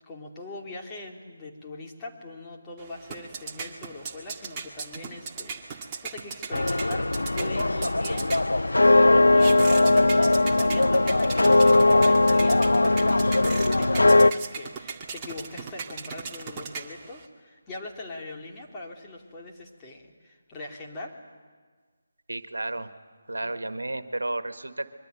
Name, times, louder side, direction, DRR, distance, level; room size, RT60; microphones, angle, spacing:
voice 1, 0.1-21.2 23.4-23.5, left 2 dB, 15° left, -2 dB, 3.0 m, -41 dB
sound 1, 2.8-17.3, right 5 dB, 20° right, 1.9 m, -38 dB
sound 2, 6.5-14.3, left 2 dB, 80° left, 0.7 m, -19 dB
voice 2, 22.3-22.9 23.3-24.9, right 2 dB, 80° right, 11 dB, 1.6 m, -32 dB
25.5 x 23.0 x 9.3 m, 1.5 s
figure-of-eight pair, 155°, 0 cm